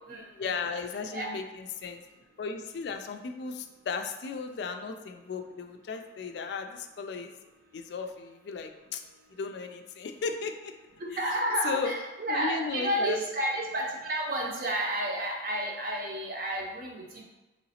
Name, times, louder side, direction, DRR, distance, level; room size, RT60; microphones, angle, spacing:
voice 1, 0.3-2.0 2.4-7.3 7.7-9.0 9.3-10.7 11.2-11.4 11.6-11.9 12.3-13.2, left 5 dB, 60° left, 6 dB, 0.3 m, -35 dB
voice 2, 11.0-17.3, right 1 dB, 45° right, -1 dB, 0.6 m, -31 dB
3.9 x 3.0 x 2.8 m, 1.1 s
head